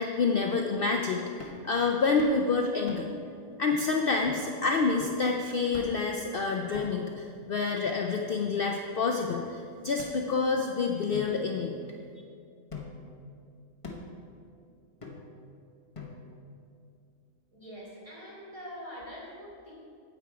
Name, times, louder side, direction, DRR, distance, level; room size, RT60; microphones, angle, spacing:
voice 1, 0.0-3.1 3.6-11.7, left 4 dB, 60° left, 2 dB, 0.6 m, -28 dB
sound 1, 1.4-1.7 2.2-2.4 2.9-3.2 3.7-3.8 4.3-4.5 5.0-5.3 5.7-6.1 6.7-7.2 7.8-8.6 9.3-9.4 10.0-10.7 11.1-12.2 12.7-13.1 13.8-14.2 15.0-15.5 15.9-16.5, left 3 dB, 25° left, 1.0 m, -44 dB
voice 2, 17.5-19.7, equal, 25° right, -6 dB, 2.8 m, -44 dB
9.0 x 8.3 x 4.7 m, 2.4 s
omnidirectional pair, 1.4 m